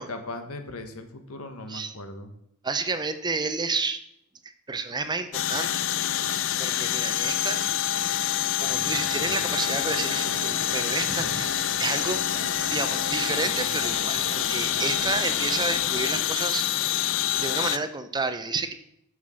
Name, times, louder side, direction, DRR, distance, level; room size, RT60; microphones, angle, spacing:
voice 1, 0.0-2.3, left 2 dB, 85° left, 7 dB, 1.3 m, -38 dB
voice 2, 2.6-4.0 4.7-5.8 6.6-7.6 8.6-12.2 12.7-16.9 17.3-18.7, right 3 dB, 20° right, 10 dB, 0.7 m, -30 dB
sound 1, 5.3-17.8, left 11 dB, 60° left, 0.5 m, -27 dB
sound 2, 8.9-16.3, right 3 dB, 65° right, 1.2 m, -39 dB
9.6 x 6.5 x 6.4 m, 0.77 s
head